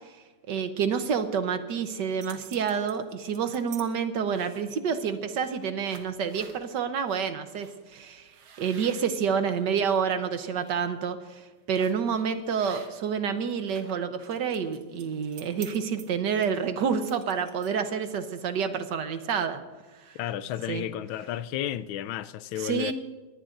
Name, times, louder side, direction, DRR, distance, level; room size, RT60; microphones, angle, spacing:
voice 1, 0.5-19.6 20.0-20.2 20.7-20.9 22.5-22.9, right 6 dB, 65° right, 1.4 m, -28 dB
sound 1, 1.9-3.9 4.3-4.8 5.4-5.5 5.8-6.6 7.1-7.2 7.6-7.7 8.3-10.0 10.4-10.7 11.7-12.1 12.6-13.2 13.4-17.9, right 7 dB, 85° right, 2.0 m, -49 dB
voice 2, 20.2-22.9, left 12 dB, 85° left, 1.4 m, -32 dB
22.0 x 18.5 x 2.6 m
omnidirectional pair, 2.2 m